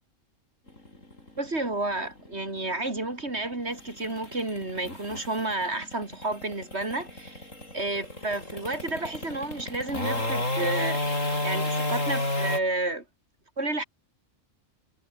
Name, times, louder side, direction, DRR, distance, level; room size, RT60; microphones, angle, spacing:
sound 1, 0.7-12.6, left 1 dB, 85° left, 7.8 m, -32 dB
voice 1, 1.4-11.0 11.4-13.0 13.6-13.8, right 2 dB, 55° right, 4.4 m, -31 dB
omnidirectional pair, 1.3 m